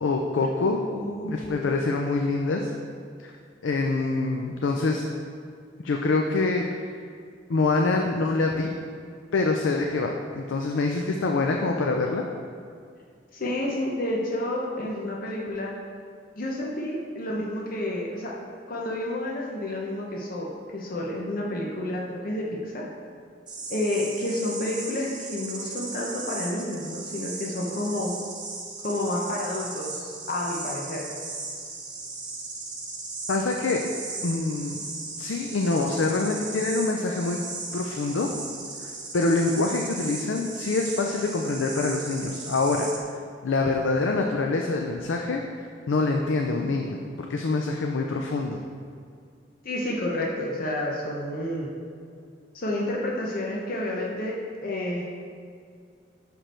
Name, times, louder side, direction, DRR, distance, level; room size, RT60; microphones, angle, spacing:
voice 1, 0.0-0.8 1.3-2.7 3.2-3.3 3.6-5.0 5.8-6.9 7.5-8.7 9.3-12.2 33.3-33.9 34.2-34.9 35.2-37.4 37.7-38.3 39.1-42.9 43.4-45.4 45.9-48.6, left 3 dB, 85° left, 2 dB, 0.5 m, -25 dB
voice 2, 0.9-1.7 13.3-15.7 16.4-18.4 18.7-22.9 23.7-28.2 28.8-31.0 49.6-51.7 52.5-55.1, left 1 dB, 50° left, -2 dB, 0.8 m, -30 dB
sound 1, 23.5-43.0, right 3 dB, 25° right, 0.8 m, -37 dB
6.0 x 5.1 x 4.3 m, 2.2 s
head